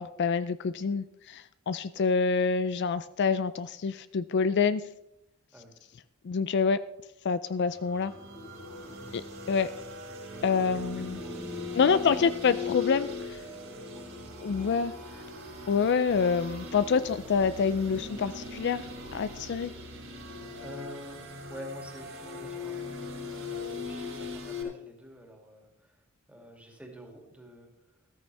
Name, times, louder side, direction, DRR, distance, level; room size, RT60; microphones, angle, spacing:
voice 1, 0.0-4.8 6.2-6.8 7.2-8.1 9.1-9.2 9.5-9.7 10.4-11.2 11.7-13.4 14.4-14.9 15.7-19.7, left 5 dB, 55° left, 14 dB, 0.4 m, -27 dB
sound 1, 7.7-24.6, left 3 dB, 70° right, 5.3 m, -39 dB
voice 2, 8.8-9.2 10.3-10.7 11.0-12.1 12.9-13.0 13.6-14.9 20.3-27.7, equal, 5° right, 1 dB, 2.4 m, -49 dB
14.5 x 13.5 x 3.4 m, 0.86 s
head